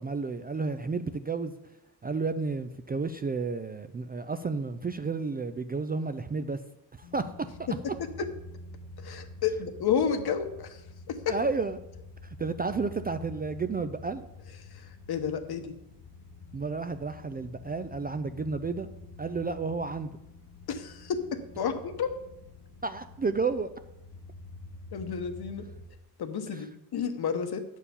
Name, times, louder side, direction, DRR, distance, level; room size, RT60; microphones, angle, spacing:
voice 1, 0.0-1.5 2.0-6.6 6.9-7.3 7.6-7.7 11.3-11.8 12.2-14.3 16.5-18.9 19.2-20.1 22.8-23.7 26.5-26.6, right 4 dB, 25° right, 10 dB, 0.3 m, -31 dB
sound 1, 7.0-25.9, left 2 dB, 85° left, 0.9 m, -48 dB
voice 2, 9.0-10.8 11.1-11.3 14.7-15.7 20.7-21.2 21.6-22.1 24.9-25.7 26.2-27.6, left 7 dB, 60° left, 8 dB, 1.1 m, -31 dB
8.7 x 4.6 x 6.9 m, 0.87 s
cardioid pair, 105°, 42 cm